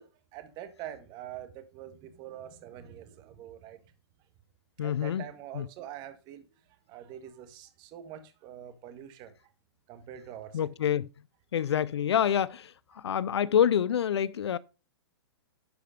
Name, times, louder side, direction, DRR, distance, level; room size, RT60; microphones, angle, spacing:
voice 1, 0.0-3.8 4.8-6.4 6.9-9.4 9.9-10.6, right 11 dB, 30° right, 1.7 m, -45 dB
voice 2, 4.8-5.2 5.5-5.7 10.5-11.1 11.5-14.6, left 9 dB, 80° left, 0.5 m, -27 dB
12.0 x 5.1 x 5.1 m
hypercardioid pair, 140°, 14 cm